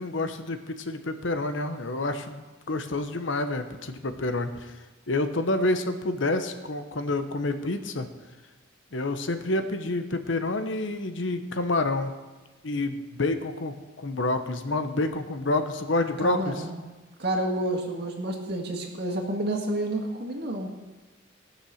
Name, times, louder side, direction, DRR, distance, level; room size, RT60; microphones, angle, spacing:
voice 1, 0.0-4.8 5.1-8.1 8.9-12.1 12.6-16.7, left 2 dB, 70° left, 8 dB, 1.0 m, -28 dB
voice 2, 16.2-16.8 17.2-20.7, right 1 dB, 55° right, 1 dB, 1.9 m, -29 dB
18.0 x 6.3 x 6.4 m, 1.2 s
head